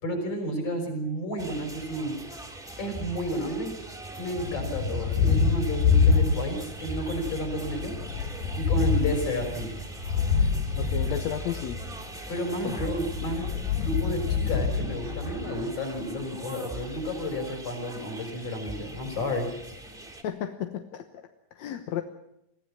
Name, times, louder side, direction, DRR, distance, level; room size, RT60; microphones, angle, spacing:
voice 1, 0.0-2.2 2.8-3.7 4.2-8.0 8.6-9.7 12.3-13.5 13.7-19.5, equal, 45° left, 4 dB, 6.9 m, -31 dB
sound 1, 1.4-20.2, right 1 dB, ahead, 2.6 m, -40 dB
Thunder, 4.3-6.8 7.1-11.9 13.0-15.6, left 5 dB, 80° left, 3.3 m, -26 dB
voice 2, 10.8-11.8 12.6-12.8 20.2-21.0 21.5-22.0, left 9 dB, 65° left, 7 dB, 2.1 m, -32 dB
23.0 x 15.5 x 8.8 m, 0.82 s
omnidirectional pair, 3.8 m